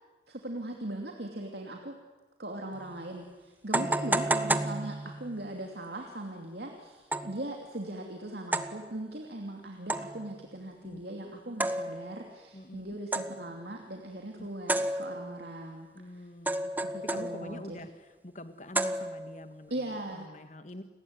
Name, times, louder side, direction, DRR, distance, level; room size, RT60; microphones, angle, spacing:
voice 1, 0.3-1.9 2.4-15.9 16.2-16.3 16.8-17.8 19.7-20.3, right 1 dB, 60° right, 2 dB, 2.8 m, -39 dB
sound 1, 2.7-2.8 3.7-5.4 7.1-7.4 8.5-8.8 9.9-10.3 11.6-12.2 13.1-13.5 14.7-15.4 16.5-17.6 18.7-19.4, right 2 dB, 10° right, 0.9 m, -31 dB
voice 2, 3.8-4.3 10.8-11.0 12.5-13.0 14.4-14.5 15.9-16.7 17.0-20.8, left 1 dB, 40° left, 9 dB, 1.8 m, -45 dB
29.5 x 20.0 x 9.6 m, 1.2 s
head